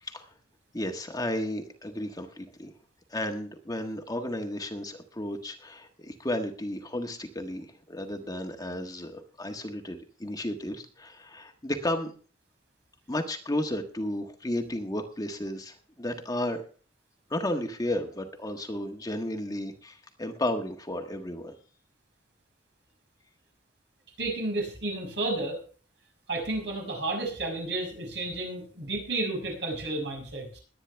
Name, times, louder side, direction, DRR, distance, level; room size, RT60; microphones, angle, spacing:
voice 1, 0.7-2.7 3.1-12.1 13.1-16.6 17.3-21.6, left 1 dB, 20° left, 4 dB, 1.5 m, -33 dB
voice 2, 24.2-25.6 26.3-30.6, right 2 dB, 75° right, 2 dB, 6.0 m, -32 dB
21.0 x 9.6 x 3.4 m, 0.40 s
head